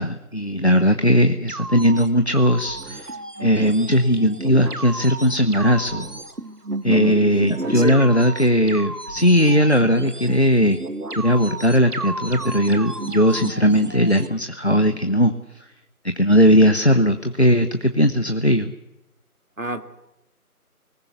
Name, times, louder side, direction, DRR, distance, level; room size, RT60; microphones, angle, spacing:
voice 1, 0.0-3.1 3.4-6.1 6.8-10.8 11.2-15.3 16.1-18.7, equal, 45° left, 8 dB, 1.0 m, -18 dB
sound 1, 1.5-14.3, right 2 dB, 80° right, 1.9 m, -32 dB
voice 2, 6.9-8.1 19.6-19.8, right 1 dB, 60° right, 9 dB, 2.1 m, -30 dB
22.5 x 19.5 x 8.2 m, 0.94 s
figure-of-eight pair, 180°, 45 cm